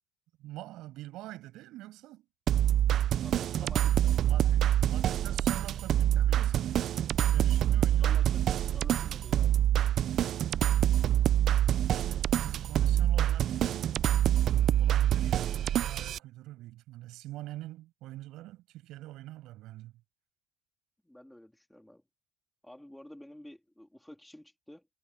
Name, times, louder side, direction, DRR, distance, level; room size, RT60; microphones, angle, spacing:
voice 1, 0.4-2.3 3.6-3.7 4.2-6.8 7.3-8.2 11.4-14.0 14.8-19.9, right 16 dB, 60° right, 6.9 m, -45 dB
sound 1, 2.5-16.2, right 11 dB, 40° right, 0.3 m, -26 dB
voice 2, 3.2-4.3 7.9-9.6 21.0-22.0 22.6-24.9, left 1 dB, 5° left, 3.1 m, -51 dB
cardioid pair, 170°, 0 cm